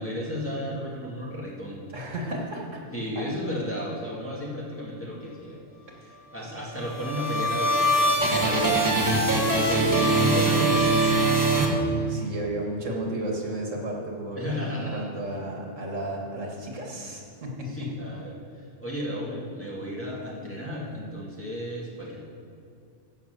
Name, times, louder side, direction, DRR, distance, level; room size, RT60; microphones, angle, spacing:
voice 1, 0.0-2.0 2.9-5.6 6.3-9.4 9.7-11.3 14.4-15.1 17.6-22.3, equal, 10° left, -5 dB, 2.1 m, -34 dB
voice 2, 1.9-2.8 3.2-3.3 6.0-6.1 9.3-10.2 12.1-14.5 14.8-17.9, right 1 dB, 80° right, -1 dB, 2.1 m, -33 dB
sound 1, 6.7-12.3, right 2 dB, 15° right, 1.3 m, -22 dB
15.5 x 5.7 x 6.8 m, 2.4 s
omnidirectional pair, 1.3 m